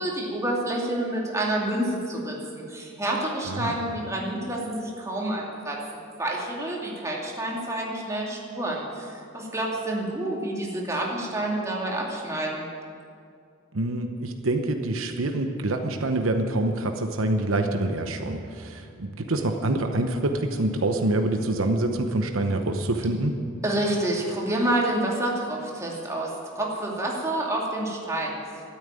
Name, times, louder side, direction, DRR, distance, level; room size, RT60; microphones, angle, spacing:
voice 1, 0.0-12.7 23.6-28.4, right 1 dB, 15° right, -3 dB, 2.5 m, -28 dB
voice 2, 3.5-3.8 13.7-23.3, right 2 dB, 80° right, 5 dB, 0.9 m, -26 dB
13.0 x 8.9 x 9.0 m, 2.3 s
head